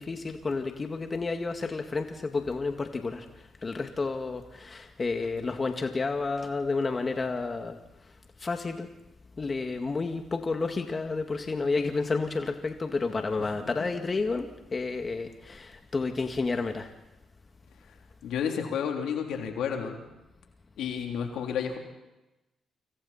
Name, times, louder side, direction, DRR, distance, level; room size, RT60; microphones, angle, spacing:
voice 1, 0.0-3.3 3.6-7.8 8.4-8.9 9.4-16.9, left 3 dB, 40° left, 5 dB, 2.1 m, -30 dB
voice 2, 18.2-20.0 20.8-21.8, left 7 dB, 75° left, 2 dB, 3.3 m, -31 dB
29.0 x 26.5 x 4.4 m, 0.98 s
supercardioid pair, 50°, 0 cm